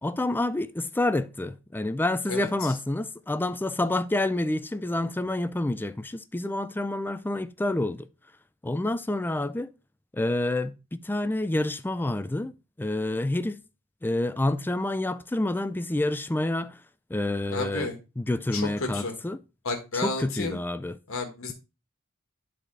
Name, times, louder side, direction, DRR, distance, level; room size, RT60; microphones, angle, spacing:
voice 1, 0.0-8.1 8.6-9.7 10.1-13.6 14.0-16.8 17.1-19.4 19.9-21.0, left 1 dB, 10° left, 0.4 m, -28 dB
voice 2, 17.5-18.0 18.5-19.1 19.6-20.6 21.1-21.5, left 3 dB, 70° left, 1.4 m, -31 dB
9.9 x 4.2 x 3.2 m
head